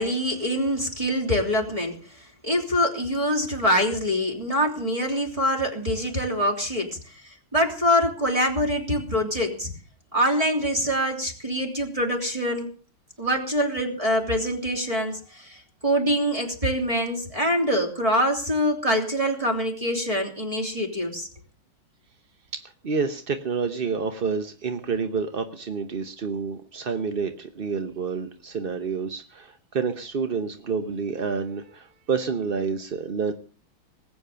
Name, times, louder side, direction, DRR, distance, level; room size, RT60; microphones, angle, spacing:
voice 1, 0.0-9.7 10.1-12.7 13.2-21.3, equal, 15° right, 2 dB, 3.2 m, -25 dB
voice 2, 22.5-33.3, right 5 dB, 45° right, 8 dB, 0.7 m, -29 dB
20.0 x 8.6 x 6.8 m, 0.41 s
omnidirectional pair, 2.3 m